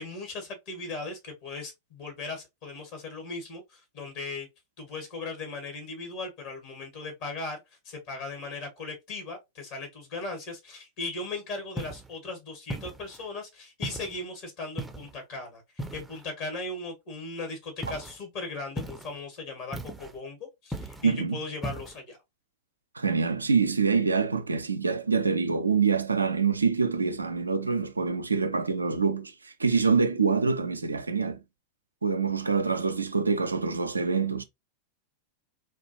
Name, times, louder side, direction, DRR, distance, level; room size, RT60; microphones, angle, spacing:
voice 1, 0.0-4.5 4.8-7.6 7.8-20.4 20.6-22.2, left 3 dB, 45° left, 1.5 m, -38 dB
sound 1, 11.8-12.1 12.7-13.3 13.8-14.2 14.8-15.2 15.8-16.3 17.8-18.2 18.8-19.2 19.7-20.2 20.7-21.1 21.6-22.0, right 1 dB, 5° right, 0.6 m, -37 dB
voice 2, 21.0-21.4 22.9-31.4 32.0-34.4, right 5 dB, 80° right, 0.4 m, -25 dB
4.3 x 2.4 x 2.8 m
figure-of-eight pair, 90°, 0 cm